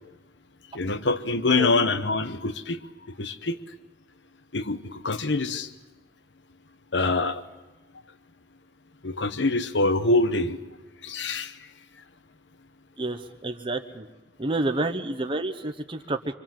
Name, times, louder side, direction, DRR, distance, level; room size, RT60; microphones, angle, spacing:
voice 1, 0.7-2.8 3.2-3.6 4.5-5.7 6.9-7.4 9.0-10.6 11.0-11.5, left 2 dB, 80° left, 12 dB, 1.1 m, -25 dB
voice 2, 13.0-14.1 14.4-16.3, right 2 dB, 30° right, 5 dB, 1.0 m, -29 dB
27.0 x 23.0 x 7.7 m, 1.1 s
head